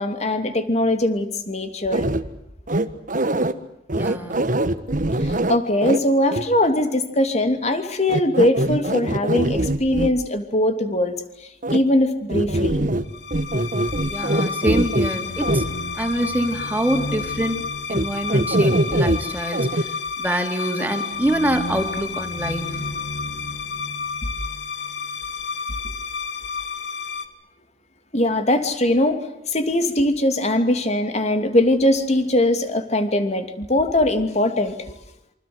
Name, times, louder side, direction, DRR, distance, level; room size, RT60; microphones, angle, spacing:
voice 1, 0.0-2.1 5.2-11.2 11.7-12.9 19.7-19.8 28.1-29.2 29.5-34.8, left 1 dB, 40° left, 8 dB, 2.9 m, -21 dB
sound 1, 1.9-2.2 2.7-3.5 3.9-6.0 6.3-6.4 8.1-10.1 11.6-11.8 12.3-13.0 13.3-15.1 15.4-15.6 17.9-18.0 18.3-19.2 19.5-19.8, right 1 dB, 50° right, 1.6 m, -22 dB
voice 2, 3.9-4.5 14.0-15.6 16.0-22.8, right 1 dB, 10° right, 4 dB, 3.6 m, -25 dB
sound 2, 13.1-27.3, left 5 dB, 70° left, 2.2 m, -30 dB
28.0 x 25.5 x 8.0 m, 0.78 s
head